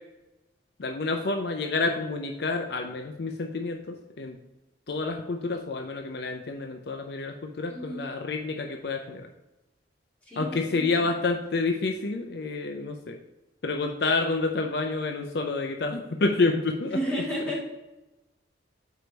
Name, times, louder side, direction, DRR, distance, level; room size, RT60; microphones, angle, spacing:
voice 1, 0.8-4.4 4.9-9.3 10.4-13.2 13.6-17.0, left 3 dB, 55° left, 4 dB, 0.5 m, -29 dB
voice 2, 7.7-8.0 10.2-11.1 16.8-17.6, equal, 5° left, -7 dB, 2.4 m, -32 dB
4.9 x 4.5 x 5.1 m, 1.0 s
head